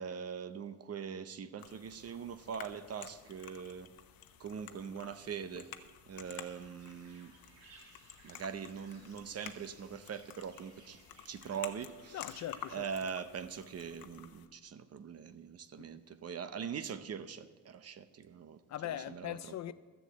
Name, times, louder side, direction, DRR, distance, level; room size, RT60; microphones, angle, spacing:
voice 1, 0.0-3.9 4.4-5.7 6.1-7.3 8.2-11.0 11.2-12.2 12.7-18.6 19.1-19.7, right 7 dB, 40° right, 0.8 m, -42 dB
sound 1, 1.6-14.5, left 10 dB, 70° left, 0.9 m, -52 dB
sound 2, 6.2-12.8, right 3 dB, 80° right, 2.9 m, -61 dB
voice 2, 12.1-12.9 15.8-15.9 18.7-19.7, left 12 dB, 50° left, 0.4 m, -40 dB
13.0 x 7.1 x 7.6 m
cardioid pair, 100°, 36 cm